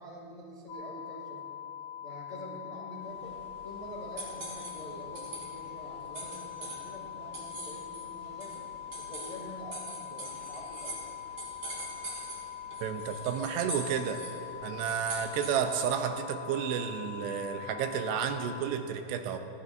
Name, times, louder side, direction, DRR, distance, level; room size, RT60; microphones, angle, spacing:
voice 1, 0.0-1.4 2.0-3.3 3.6-8.6 9.0-11.1, equal, 65° left, -4 dB, 0.4 m, -46 dB
sound 1, 0.7-18.6, left 10 dB, 85° left, 3.4 m, -43 dB
sound 2, 3.1-15.9, right 1 dB, 30° right, 3.5 m, -44 dB
voice 2, 12.8-14.2 14.6-19.4, right 8 dB, 80° right, 7 dB, 2.8 m, -31 dB
29.5 x 10.5 x 2.6 m, 2.8 s
omnidirectional pair, 4.9 m